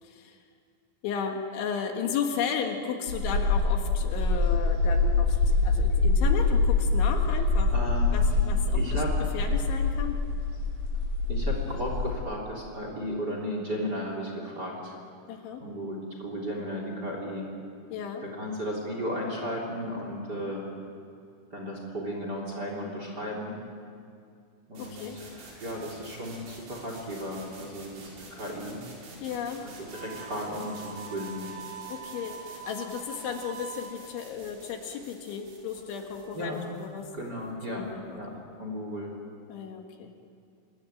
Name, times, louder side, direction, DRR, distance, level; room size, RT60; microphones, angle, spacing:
voice 1, 0.0-0.4 1.0-7.7 8.1-9.0 9.3-10.2 15.3-15.6 17.9-18.2 24.8-25.2 29.2-29.7 31.9-37.1 37.7-38.4 39.5-40.2, left 7 dB, 70° left, 3 dB, 3.8 m, -34 dB
sound 1, 3.1-12.1, left 3 dB, 45° left, 8.0 m, -25 dB
voice 2, 7.7-8.3 8.7-9.3 11.3-14.9 15.6-17.4 18.2-20.6 21.5-23.6 24.7-28.8 29.6-31.4 36.3-36.6 37.1-37.8 38.1-38.3 38.6-39.1, equal, 25° right, 0 dB, 3.2 m, -35 dB
sound 2, 24.7-38.5, right 3 dB, 85° right, 7.8 m, -49 dB
Harmonica, 29.9-34.0, right 7 dB, 65° right, 2.1 m, -43 dB
26.5 x 21.0 x 9.0 m, 2.4 s
omnidirectional pair, 5.9 m